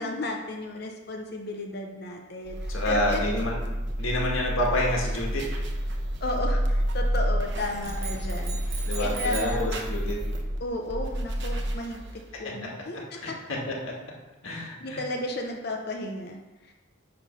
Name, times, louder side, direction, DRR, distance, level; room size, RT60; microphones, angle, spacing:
voice 1, 0.0-3.2 6.2-9.6 10.6-13.2 14.8-16.7, left 1 dB, 50° left, 2 dB, 0.7 m, -34 dB
sound 1, 2.4-12.4, equal, 55° right, 0.9 m, -29 dB
voice 2, 2.7-3.6 4.0-5.4 8.8-10.2 13.2-13.9 14.4-15.0, left 1 dB, 80° left, -2 dB, 1.8 m, -28 dB
sound 2, 7.8-9.7, right 7 dB, 80° right, 1.1 m, -39 dB
9.2 x 3.3 x 5.3 m, 1.1 s
head